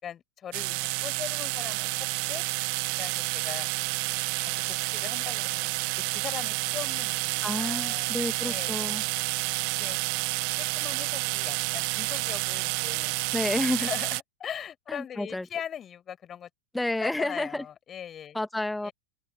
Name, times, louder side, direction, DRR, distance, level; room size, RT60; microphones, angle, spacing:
voice 1, 0.0-1.9 2.3-2.4 2.9-3.7 4.4-4.5 4.9-8.1 8.4-9.0 9.7-10.0 10.6-13.2 13.8-16.5 16.9-18.4 18.8-18.9, left 9 dB, 25° left, 6.1 m, -40 dB
sound 1, 0.5-14.2, right 40 dB or more, 45° right, 0.6 m, -30 dB
voice 2, 7.4-9.0 13.3-13.9 14.9-15.5 16.7-17.6 18.3-18.9, left 1 dB, 5° left, 2.3 m, -30 dB
figure-of-eight pair, 90°, 0 cm